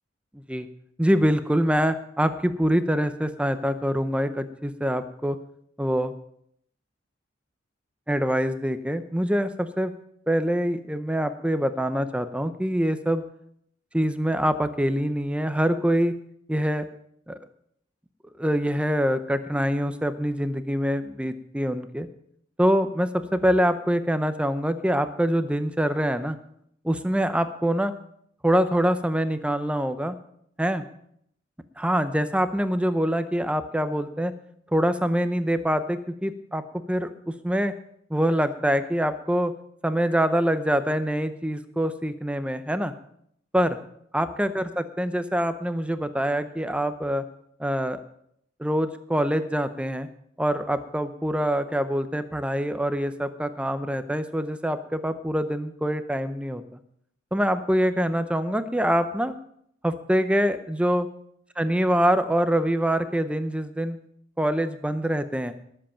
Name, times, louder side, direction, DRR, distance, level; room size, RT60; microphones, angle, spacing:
voice 1, 1.0-5.4 5.8-6.1 8.1-9.9 10.3-13.2 13.9-16.1 16.5-16.9 18.4-22.1 22.6-26.4 26.8-27.9 28.4-30.2 30.6-30.8 31.8-34.3 34.7-36.6 36.9-37.1 37.4-37.7 38.1-39.5 39.8-42.9 43.5-43.8 44.1-47.2 47.6-48.0 48.6-50.1 50.4-56.6 57.3-59.3 59.8-61.1 61.6-64.0 64.4-65.5, equal, 5° right, 10 dB, 0.6 m, -24 dB
19.0 x 7.8 x 5.6 m, 0.70 s
head